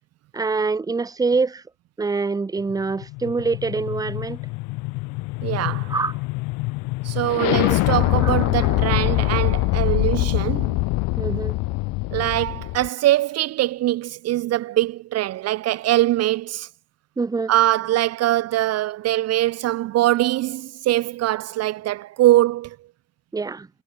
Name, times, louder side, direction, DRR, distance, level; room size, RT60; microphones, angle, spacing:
voice 1, 0.3-1.6 2.0-4.4 5.9-6.2 7.6-7.8 8.2-8.4 11.2-11.6 17.2-17.5 23.3-23.7, right 4 dB, 10° right, 0.9 m, -25 dB
sound 1, 2.7-12.9, left 23 dB, 85° left, 0.7 m, -24 dB
voice 2, 5.4-5.9 7.0-10.8 12.1-16.7 17.5-22.8, right 15 dB, 50° right, 0.8 m, -22 dB
cardioid pair, 170°, 32 cm